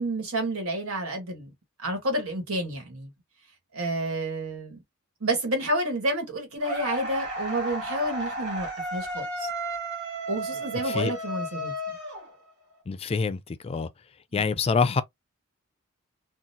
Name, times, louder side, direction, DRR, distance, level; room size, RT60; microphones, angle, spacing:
voice 1, 0.0-1.5 1.8-3.1 3.7-4.8 5.2-9.5 10.3-12.0 14.3-14.4, right 1 dB, 90° right, 1.6 m, -30 dB
sound 1, 6.6-12.7, right 1 dB, 55° right, 1.8 m, -33 dB
voice 2, 12.9-13.9 14.3-15.0, left 5 dB, 30° left, 0.3 m, -26 dB
3.8 x 2.3 x 2.7 m
head